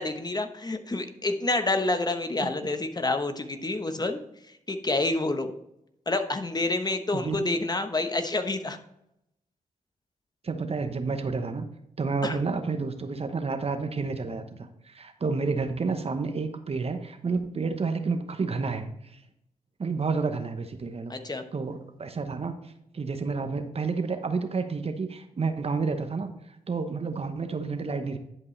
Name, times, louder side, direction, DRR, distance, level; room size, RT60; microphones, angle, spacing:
voice 1, 0.0-4.2 4.5-5.5 6.1-8.8 12.2-12.4 21.1-21.4, left 2 dB, 30° left, 7 dB, 1.1 m, -28 dB
voice 2, 7.1-7.6 10.4-11.7 12.0-19.2 19.8-21.1 21.5-28.2, right 4 dB, 45° right, 8 dB, 1.0 m, -30 dB
11.0 x 5.3 x 3.3 m, 0.79 s
cardioid pair, 50°, 14 cm